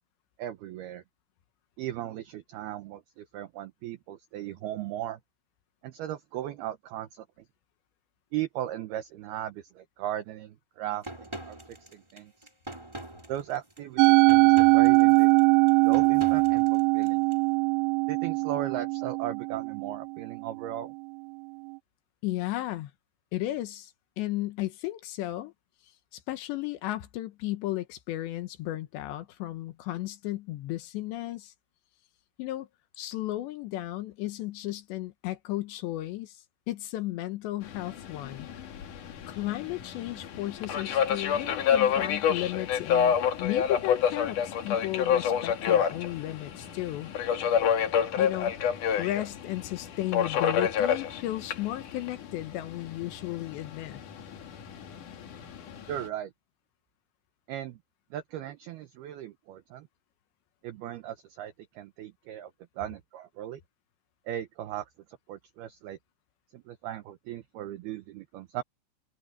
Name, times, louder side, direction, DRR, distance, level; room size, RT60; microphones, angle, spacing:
voice 1, 0.4-1.0 1.8-5.2 5.8-7.3 8.3-11.6 11.9-12.3 13.3-15.4 15.8-17.3 18.1-20.9 55.9-56.3 57.5-57.8 58.1-59.9 60.6-62.5 62.8-63.6 64.3-64.9 65.3-66.0 66.5-68.6, right 12 dB, 75° right, 2.4 m, -37 dB
sound 1, 11.0-17.4, right 1 dB, 5° right, 3.0 m, -43 dB
Musical instrument, 14.0-20.4, right 28 dB, 90° right, 3.4 m, -21 dB
voice 2, 22.2-22.9 23.3-23.9 24.2-25.5 26.1-31.5 32.4-32.7 33.0-38.5 39.3-47.1 48.2-54.0, left 16 dB, 75° left, 3.0 m, -34 dB
Subway metro underground, 37.6-56.1, left 8 dB, 55° left, 2.6 m, -29 dB
omnidirectional pair, 5.7 m